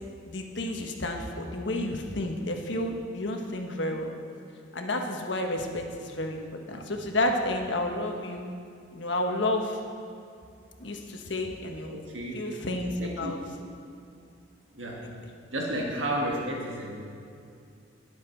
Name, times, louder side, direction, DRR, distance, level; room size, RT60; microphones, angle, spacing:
voice 1, 0.3-4.1 4.7-8.4 8.9-9.8 10.8-11.9 12.3-13.4, left 1 dB, 65° left, 3 dB, 1.3 m, -31 dB
voice 2, 11.9-12.4 13.0-13.3 14.7-15.1 15.5-16.9, right 1 dB, 75° right, -2 dB, 1.7 m, -32 dB
20.5 x 7.5 x 4.5 m, 2.4 s
head